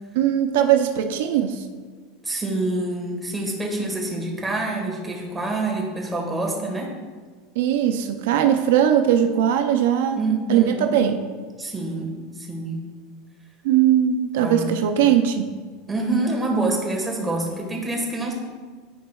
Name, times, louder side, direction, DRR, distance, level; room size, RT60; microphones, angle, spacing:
voice 1, 0.1-1.7 7.6-10.2 10.5-11.2 13.6-15.5, right 10 dB, 75° right, 6 dB, 0.5 m, -20 dB
voice 2, 2.2-6.9 10.1-11.0 11.6-12.8 14.4-14.9 15.9-18.3, right 2 dB, 10° right, -1 dB, 1.4 m, -26 dB
13.0 x 5.2 x 2.3 m, 1.5 s
supercardioid pair, 150°, 0 cm